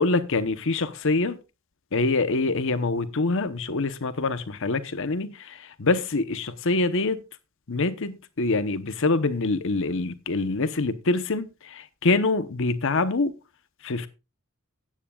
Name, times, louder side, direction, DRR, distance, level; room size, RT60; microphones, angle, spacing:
voice 1, 0.0-1.4 1.9-7.2 7.7-13.3 13.8-14.1, left 3 dB, 65° left, 0.9 m, -25 dB
16.0 x 9.9 x 2.4 m
head